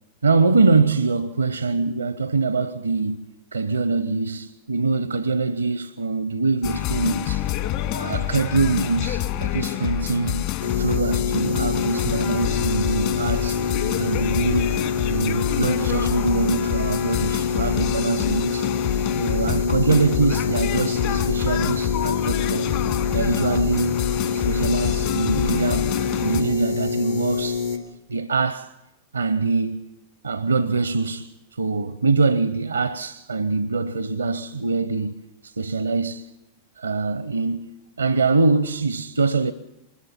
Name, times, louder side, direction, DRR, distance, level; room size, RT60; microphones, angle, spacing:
voice 1, 0.2-3.3 3.5-7.5 7.9-13.6 14.0-18.7 19.2-22.7 23.1-25.9 26.2-27.7 28.1-28.7 29.1-29.9 30.2-36.3 36.8-37.7 38.0-39.5, right 4 dB, 75° right, 0.7 m, -24 dB
sound 1, 6.6-26.4, left 13 dB, 50° left, 2.1 m, -27 dB
sound 2, 10.6-27.8, left 5 dB, 80° left, 3.1 m, -26 dB
24.5 x 21.5 x 5.8 m
figure-of-eight pair, 90°, 0 cm